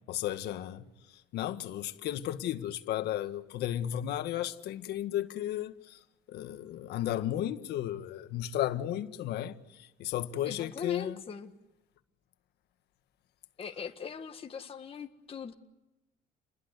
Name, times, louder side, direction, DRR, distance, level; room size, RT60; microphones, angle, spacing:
voice 1, 0.1-0.8 1.3-6.0 6.3-11.2, left 12 dB, 75° left, 1.7 m, -34 dB
voice 2, 10.5-11.5 13.6-15.5, left 6 dB, 35° left, 1.7 m, -40 dB
29.5 x 21.5 x 8.3 m
cardioid pair, 110°, 17 cm